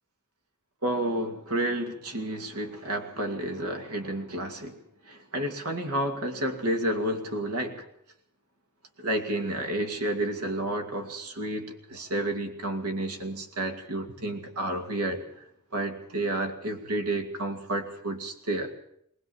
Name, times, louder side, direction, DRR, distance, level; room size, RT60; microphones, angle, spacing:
voice 1, 0.8-4.8 5.0-7.8 9.0-15.2 15.7-18.7, right 1 dB, 75° right, 5 dB, 2.4 m, -30 dB
20.0 x 19.0 x 7.2 m, 0.73 s
head